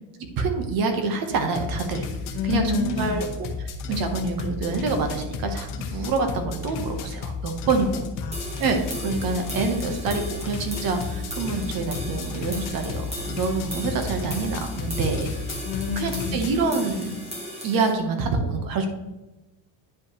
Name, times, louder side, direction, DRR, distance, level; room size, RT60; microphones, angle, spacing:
voice 1, 0.4-2.1 2.4-8.0 8.6-15.6 15.9-17.2 17.6-18.9, right 4 dB, 50° right, 5 dB, 1.2 m, -26 dB
sound 1, 1.5-16.5, left 4 dB, 45° left, 0.9 m, -33 dB
voice 2, 2.3-3.3 8.2-8.6 15.6-16.5, left 5 dB, 75° left, 5 dB, 1.2 m, -29 dB
sound 2, 8.3-17.9, equal, 15° right, 1.5 m, -37 dB
9.7 x 5.3 x 3.1 m, 1.0 s
cardioid pair, 160°, 45 cm